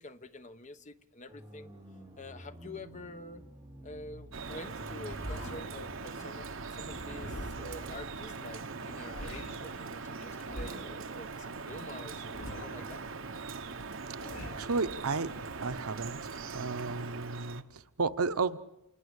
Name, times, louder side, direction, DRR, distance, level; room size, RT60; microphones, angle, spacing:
voice 1, 0.0-1.7 2.2-3.5 3.8-13.0, left 2 dB, 35° left, 10 dB, 1.0 m, -47 dB
sound 1, 1.3-8.3, equal, 10° right, 4.9 m, -49 dB
Drip, 4.3-17.6, right 4 dB, 60° right, 1.1 m, -41 dB
sound 2, 5.1-5.8 6.9-7.8 8.8-9.7 10.4-11.0 12.1-12.9 14.0-14.8, left 1 dB, 65° left, 2.6 m, -44 dB
voice 2, 14.2-15.3 15.6-16.2 16.5-18.6, right 4 dB, 80° right, 11 dB, 0.9 m, -33 dB
28.0 x 21.0 x 8.2 m, 0.94 s
head